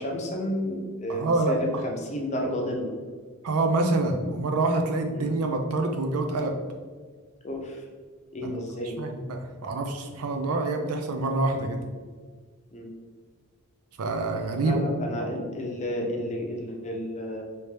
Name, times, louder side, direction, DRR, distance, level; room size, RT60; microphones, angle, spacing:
voice 1, 0.0-3.0 5.1-5.3 7.4-7.9 8.3-9.0 12.7-12.9 14.5-17.4, equal, 35° left, 1 dB, 0.6 m, -31 dB
voice 2, 1.1-1.5 3.4-6.5 8.4-8.5 9.0-11.8 14.0-14.8, right 2 dB, 85° right, 4 dB, 0.5 m, -26 dB
3.3 x 2.8 x 3.3 m, 1.5 s
head